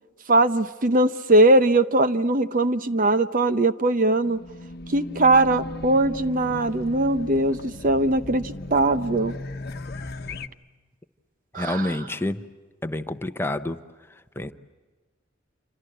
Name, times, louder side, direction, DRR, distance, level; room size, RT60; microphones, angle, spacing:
voice 1, 0.3-4.4 4.9-9.3 11.5-11.9, right 2 dB, 45° right, 12 dB, 0.8 m, -20 dB
Race car auto racing / Alarm, 4.2-10.5, left 2 dB, 50° left, 1.1 m, -37 dB
voice 2, 11.6-12.4 12.8-13.8 14.4-14.5, left 1 dB, 10° left, 9 dB, 0.8 m, -28 dB
28.0 x 26.0 x 7.9 m, 1.4 s
head